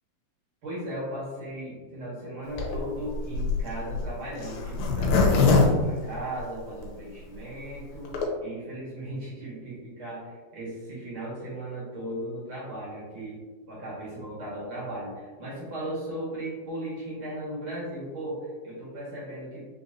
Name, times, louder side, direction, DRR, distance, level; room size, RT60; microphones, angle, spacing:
voice 1, 0.6-8.1 8.4-13.4 13.7-19.6, right 1 dB, 55° right, -8 dB, 1.5 m, -37 dB
Zipper (clothing), 2.5-6.8 7.3-7.4 7.6-7.7 7.9-8.3, left 4 dB, 80° left, 2.4 m, -23 dB
5.6 x 2.9 x 2.6 m, 1.4 s
omnidirectional pair, 4.4 m